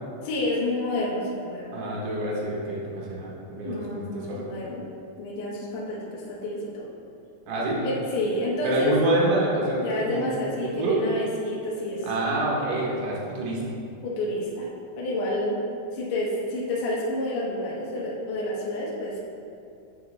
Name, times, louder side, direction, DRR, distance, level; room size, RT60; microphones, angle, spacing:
voice 1, 0.2-1.8 3.6-4.8 5.2-6.9 7.8-8.9 9.8-12.1 14.0-14.7 15.0-15.6 15.9-19.2, left 1 dB, 85° left, -6 dB, 1.5 m, -29 dB
voice 2, 1.7-4.4 7.5-7.8 8.6-10.3 10.6-11.0 12.0-13.6, right 1 dB, 85° right, -5 dB, 1.7 m, -27 dB
8.7 x 3.6 x 3.1 m, 2.5 s
omnidirectional pair, 4.8 m